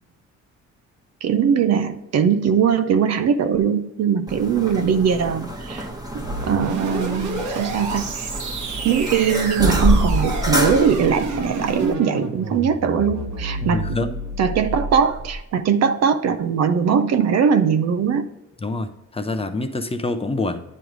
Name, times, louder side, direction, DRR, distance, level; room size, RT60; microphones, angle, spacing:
voice 1, 1.2-5.9 6.4-8.3 8.8-13.8 14.4-18.3, right 7 dB, 60° right, 0.6 m, -20 dB
sound 1, 4.3-11.9, equal, 10° right, 1.2 m, -26 dB
sound 2, 6.2-15.4, right 2 dB, 75° right, 1.2 m, -30 dB
voice 2, 13.6-14.2 18.6-20.6, left 2 dB, 20° left, 0.6 m, -26 dB
9.3 x 3.2 x 5.0 m
cardioid pair, 90°, 30 cm